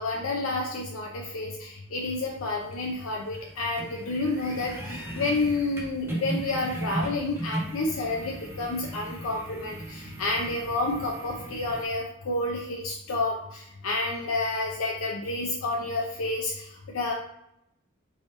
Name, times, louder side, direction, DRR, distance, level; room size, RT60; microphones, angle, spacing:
voice 1, 0.0-17.1, left 2 dB, 75° left, 0 dB, 0.5 m, -30 dB
sound 1, 2.0-11.8, right 1 dB, 10° right, 0.7 m, -37 dB
3.4 x 2.8 x 3.2 m, 0.77 s
head